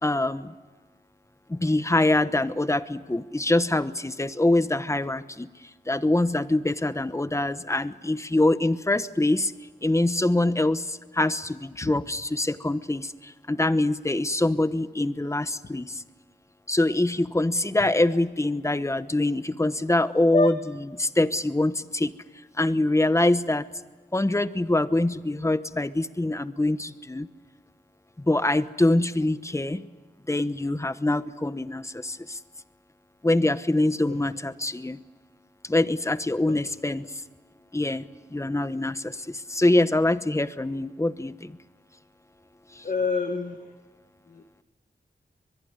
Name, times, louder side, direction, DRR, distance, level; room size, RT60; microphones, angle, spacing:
voice 1, 0.0-0.5 1.5-5.5 5.9-9.5 9.8-16.0 16.7-20.6 21.0-22.1 22.6-23.7 24.1-27.3 28.2-29.8 30.3-32.4 33.2-35.0 35.6-37.1 37.7-38.1 38.3-41.6 42.7-42.8, left 2 dB, 15° left, 13 dB, 1.0 m, -24 dB
voice 2, 42.8-43.6 44.3-44.4, left 3 dB, 45° left, 6 dB, 1.7 m, -26 dB
23.0 x 22.0 x 9.5 m, 1.3 s
wide cardioid pair, 75°, 18 cm